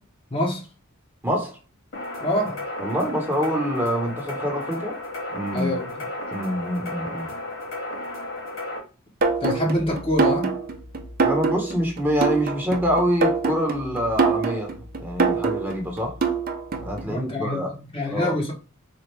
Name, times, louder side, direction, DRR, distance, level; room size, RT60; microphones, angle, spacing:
voice 1, 0.3-0.7 2.2-2.6 5.5-6.1 9.4-10.5 17.1-18.5, left 1 dB, 25° left, 0.8 m, -25 dB
voice 2, 1.2-1.6 2.8-5.0 5.3-5.7 6.3-7.3 11.2-14.7 15.0-16.2 16.8-17.7 18.1-18.4, equal, 10° right, 0.9 m, -25 dB
sound 1, 1.9-8.8, left 1 dB, 65° left, 1.5 m, -33 dB
sound 2, 9.2-17.0, right 4 dB, 40° right, 0.5 m, -25 dB
4.2 x 2.4 x 3.1 m
head